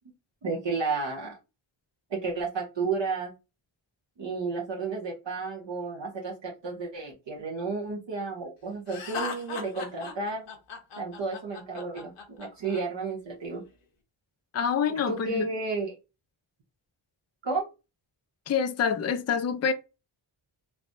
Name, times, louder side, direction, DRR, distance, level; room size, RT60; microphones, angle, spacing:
voice 1, 0.4-1.4 2.1-3.3 4.2-10.5 11.0-13.6 15.1-16.0 17.4-17.7, right 4 dB, 60° right, 0.9 m, -32 dB
Laughter, 8.9-12.8, left 5 dB, 80° left, 0.9 m, -38 dB
voice 2, 14.5-15.4 18.5-19.7, left 7 dB, 35° left, 0.4 m, -26 dB
3.3 x 2.1 x 2.6 m
wide cardioid pair, 95°, 49 cm